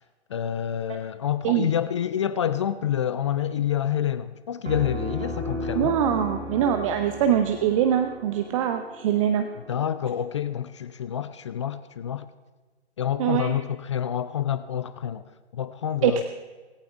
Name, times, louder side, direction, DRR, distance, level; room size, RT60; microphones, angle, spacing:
voice 1, 0.3-6.0 9.7-12.3 13.0-15.2 15.5-16.2, left 10 dB, 25° left, 0.4 m, -28 dB
Piano, 4.7-10.2, equal, 80° right, 2.0 m, -35 dB
voice 2, 5.7-9.5 13.2-13.5 16.0-16.2, right 9 dB, 30° right, 0.8 m, -23 dB
18.0 x 17.5 x 3.5 m
figure-of-eight pair, 120°, 34 cm